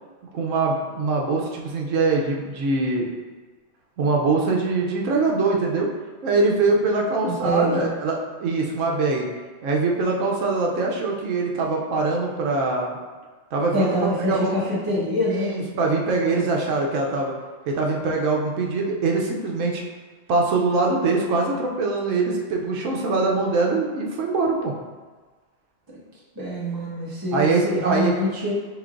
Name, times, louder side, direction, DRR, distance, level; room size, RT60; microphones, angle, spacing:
voice 1, 0.3-3.1 4.0-5.9 6.2-9.3 9.6-13.0 13.5-14.5 15.3-17.3 17.7-19.8 20.3-24.7 27.3-28.1, right 3 dB, 80° right, 0 dB, 1.0 m, -23 dB
voice 2, 7.3-7.9 13.7-15.7 16.2-16.5 26.3-28.5, equal, 20° right, -6 dB, 0.8 m, -25 dB
5.1 x 3.2 x 2.4 m, 1.4 s
omnidirectional pair, 1.3 m